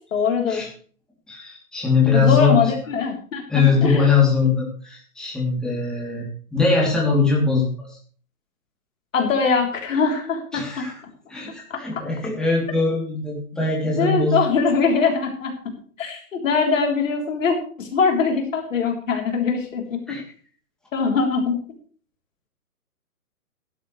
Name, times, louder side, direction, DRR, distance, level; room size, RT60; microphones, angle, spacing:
voice 1, 0.1-0.7 2.1-4.1 9.1-10.9 11.7-12.0 14.0-15.5 16.0-20.2 20.9-21.6, left 5 dB, 55° left, 2 dB, 3.7 m, -22 dB
voice 2, 1.3-2.7 3.5-6.3 6.5-8.0 10.5-10.9 11.3-14.4 20.1-20.2, left 4 dB, ahead, -5 dB, 3.0 m, -21 dB
16.5 x 11.5 x 3.2 m, 0.44 s
figure-of-eight pair, 135°, 46 cm